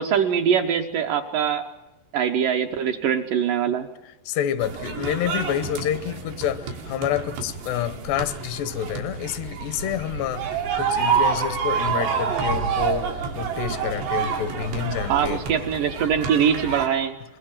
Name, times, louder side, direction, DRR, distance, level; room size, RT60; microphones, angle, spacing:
voice 1, 0.0-1.6 2.1-3.9 15.1-17.2, right 8 dB, 70° right, 2.1 m, -23 dB
voice 2, 4.3-10.5 10.8-15.4, left 10 dB, 80° left, 3.1 m, -28 dB
sound 1, 4.6-16.9, right 6 dB, 85° right, 5.2 m, -28 dB
24.5 x 22.0 x 7.3 m
omnidirectional pair, 4.8 m